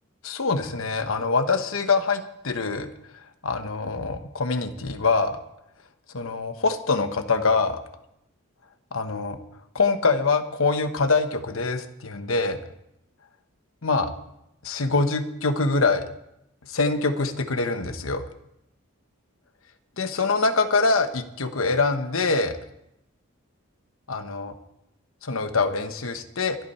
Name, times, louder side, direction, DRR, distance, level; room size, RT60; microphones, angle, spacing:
voice 1, 0.2-2.9 3.4-5.4 6.1-7.8 8.9-9.4 9.7-12.6 13.8-14.1 14.6-16.0 16.7-18.3 20.0-22.6 24.1-24.5 25.2-26.6, left 3 dB, 70° left, 8 dB, 1.2 m, -24 dB
24.5 x 8.8 x 4.4 m, 0.81 s
head